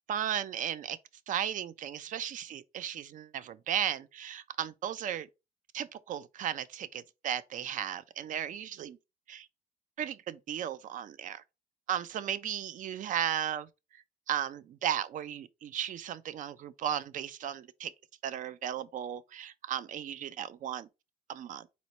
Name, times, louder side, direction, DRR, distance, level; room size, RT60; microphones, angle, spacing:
voice 1, 0.1-1.0 1.3-5.3 5.7-9.0 9.3-9.5 10.0-11.4 11.9-17.9 18.2-20.9 21.3-21.7, right 10 dB, 50° right, 0.4 m, -35 dB
4.1 x 2.1 x 4.3 m
cardioid pair, 110°, 17 cm